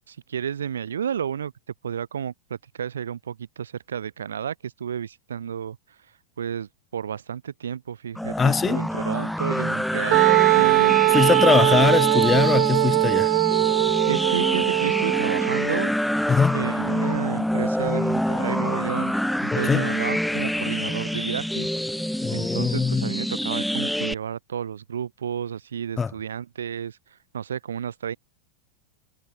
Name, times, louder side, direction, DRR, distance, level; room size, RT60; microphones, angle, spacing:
voice 1, 0.1-1.5 1.8-5.8 6.4-10.2 10.5-11.0 14.1-15.9 16.5-19.1 19.4-21.7 22.3-27.0 27.3-28.2, right 8 dB, 65° right, 4.2 m, -31 dB
sound 1, 8.2-24.1, equal, ahead, 2.4 m, -26 dB
voice 2, 8.4-8.8 11.1-13.3 16.3-16.6 19.5-19.9 22.2-23.0 26.0-26.1, left 5 dB, 15° left, 1.5 m, -21 dB
Wind instrument woodwind instrument, 10.1-15.7, right 40 dB or more, 45° right, 2.1 m, -20 dB
figure-of-eight pair, 90°, 0 cm